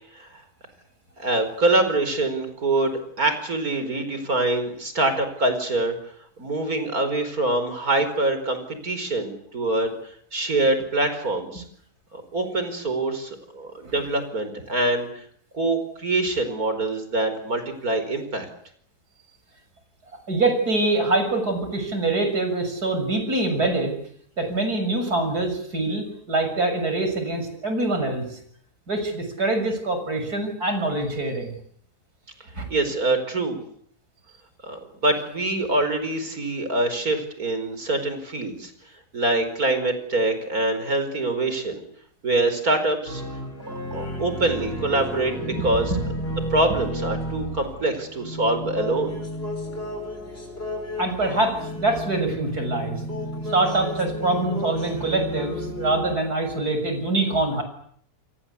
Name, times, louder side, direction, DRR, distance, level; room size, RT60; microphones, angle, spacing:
voice 1, 1.2-5.9 6.4-9.9 10.3-11.6 12.1-15.2 15.5-18.5 32.7-33.6 34.6-38.7 39.1-41.8 42.2-43.2 43.9-45.9 46.5-49.2, right 2 dB, 70° right, 9 dB, 5.4 m, -24 dB
voice 2, 20.3-24.0 24.4-28.4 28.9-31.6 32.5-32.6 45.5-45.6 46.3-46.4 51.0-53.0 53.5-57.6, right 2 dB, 85° right, 7 dB, 7.3 m, -24 dB
sound 1, 43.1-56.2, equal, 40° left, 6.2 m, -32 dB
29.5 x 23.0 x 8.4 m, 0.65 s
omnidirectional pair, 1.6 m